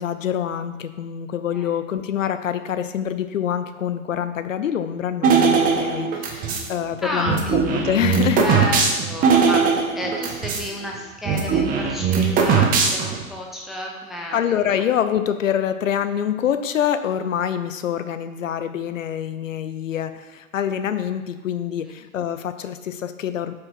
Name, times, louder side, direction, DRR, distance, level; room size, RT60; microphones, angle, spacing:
voice 1, 0.0-8.4 14.3-23.5, left 9 dB, 65° left, 11 dB, 0.7 m, -25 dB
sound 1, 5.2-6.7 7.2-10.7 10.9-11.0 11.2-13.2, right 6 dB, 20° right, 1.0 m, -19 dB
voice 2, 7.0-7.6 8.4-14.6 21.8-21.9, left 1 dB, ahead, -1 dB, 0.5 m, -31 dB
8.3 x 5.0 x 4.7 m, 1.3 s
figure-of-eight pair, 105°, 42 cm